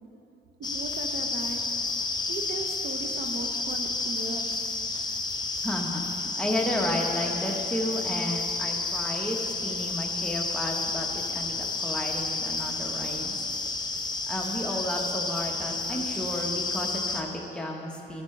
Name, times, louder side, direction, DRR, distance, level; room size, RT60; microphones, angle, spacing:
sound 1, 0.6-17.2, left 3 dB, 20° left, 0.7 m, -31 dB
voice 1, 0.6-1.7 2.3-4.7, right 3 dB, 55° right, 4 dB, 0.7 m, -37 dB
voice 2, 5.6-13.3 14.3-18.2, left 1 dB, 5° left, -1 dB, 1.1 m, -32 dB
13.5 x 6.1 x 3.3 m, 2.9 s
cardioid pair, 90°, 20 cm